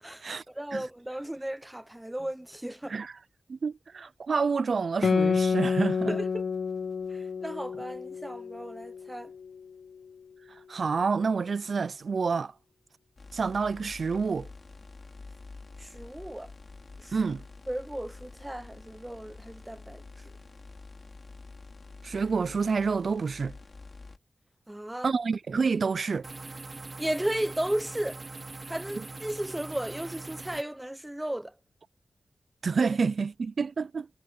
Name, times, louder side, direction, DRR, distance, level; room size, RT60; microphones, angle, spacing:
voice 1, 0.0-3.0 6.1-6.4 7.1-9.3 15.8-16.5 17.0-17.2 17.7-20.0 24.7-25.1 27.0-28.2 28.7-31.5, right 1 dB, 10° right, 0.6 m, -35 dB
voice 2, 3.5-6.1 10.7-12.5 13.3-14.5 17.1-17.4 22.0-23.5 25.0-26.3 32.6-34.1, right 5 dB, 65° right, 0.3 m, -28 dB
Guitar, 5.0-10.0, left 5 dB, 65° left, 1.1 m, -29 dB
sound 1, 13.2-24.2, left 3 dB, 45° left, 4.0 m, -48 dB
sound 2, 26.2-30.6, right 3 dB, 40° right, 1.0 m, -42 dB
wide cardioid pair, 130°, 0 cm